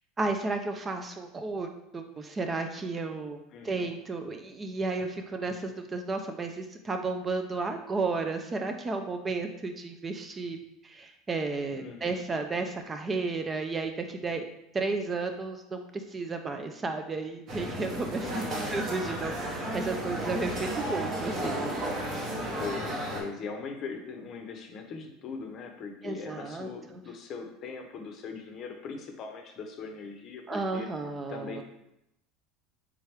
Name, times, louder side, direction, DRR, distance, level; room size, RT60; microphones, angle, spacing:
voice 1, 0.2-1.7 1.9-3.4 3.6-10.6 10.8-14.4 14.7-18.4 18.7-21.6 26.0-27.0 30.5-31.6, right 3 dB, 20° right, 6 dB, 0.3 m, -33 dB
voice 2, 3.5-3.9 11.7-12.2 18.2-18.8 22.6-30.9 31.3-31.6, left 5 dB, 45° left, 3 dB, 0.6 m, -40 dB
sound 1, 17.5-23.2, right 1 dB, 40° right, 1.0 m, -33 dB
sound 2, 20.9-24.8, right 5 dB, 70° right, 1.0 m, -51 dB
3.6 x 3.0 x 3.2 m, 0.83 s
supercardioid pair, 120°, 0 cm